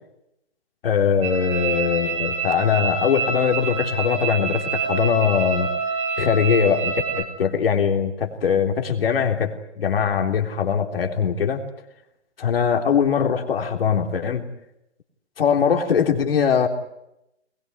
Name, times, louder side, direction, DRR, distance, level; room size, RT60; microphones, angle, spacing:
voice 1, 0.8-5.7 6.2-11.6 12.4-14.5 15.4-16.7, left 7 dB, 55° left, 4 dB, 3.5 m, -21 dB
sound 1, 1.2-7.2, right 5 dB, 20° right, 3.8 m, -27 dB
22.0 x 21.5 x 9.1 m, 0.84 s
figure-of-eight pair, 135°, 34 cm